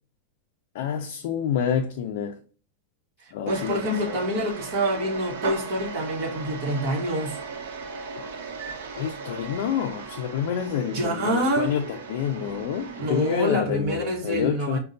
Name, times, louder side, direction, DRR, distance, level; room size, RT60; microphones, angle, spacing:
voice 1, 0.7-2.4 3.3-4.2 9.0-14.8, left 8 dB, 55° left, 0.4 m, -28 dB
voice 2, 3.2-7.4 10.9-11.7 13.0-14.8, equal, 35° right, 1.1 m, -26 dB
sound 1, 3.5-13.5, right 5 dB, 75° right, 0.8 m, -37 dB
5.3 x 2.1 x 2.5 m
supercardioid pair, 170°, 0 cm